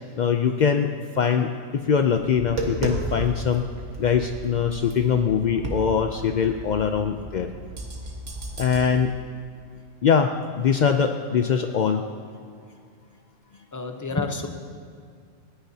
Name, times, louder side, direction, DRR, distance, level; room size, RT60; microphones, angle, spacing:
voice 1, 0.2-3.7 4.0-7.5 8.6-9.1 10.0-12.0, left 7 dB, 70° left, 6 dB, 0.4 m, -22 dB
Tap, 2.2-8.8, right 1 dB, 60° right, 1.9 m, -34 dB
voice 2, 13.7-14.5, left 3 dB, 20° left, 4 dB, 0.6 m, -28 dB
26.5 x 9.9 x 2.8 m, 2.2 s
omnidirectional pair, 1.4 m